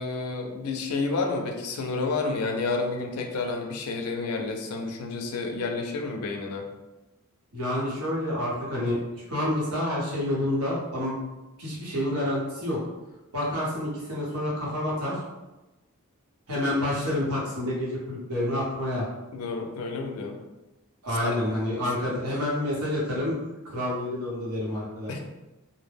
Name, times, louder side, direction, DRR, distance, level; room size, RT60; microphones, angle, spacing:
voice 1, 0.0-6.7 19.3-20.4 21.2-21.4 25.1-25.2, left 3 dB, 70° left, 2 dB, 0.4 m, -30 dB
voice 2, 7.5-9.0 9.3-11.3 11.6-12.8 13.3-15.2 16.5-19.0 21.0-23.4 23.6-25.2, left 1 dB, 75° right, -5 dB, 0.9 m, -28 dB
2.1 x 2.0 x 3.3 m, 1.0 s
head